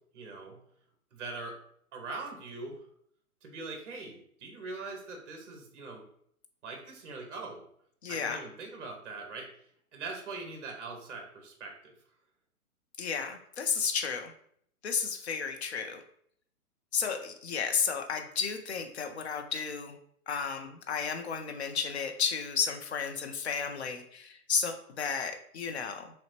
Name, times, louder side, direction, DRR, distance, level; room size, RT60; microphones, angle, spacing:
voice 1, 0.1-0.6 1.1-1.5 1.9-2.8 3.4-6.0 6.6-7.6 8.1-9.5 9.9-11.9, right 3 dB, 50° right, 3 dB, 1.1 m, -42 dB
voice 2, 8.0-8.4 13.0-14.3 14.8-16.0 16.9-20.0 20.3-26.1, left 6 dB, 50° left, 6 dB, 0.5 m, -33 dB
5.8 x 2.1 x 2.8 m, 0.65 s
hypercardioid pair, 175°, 45 cm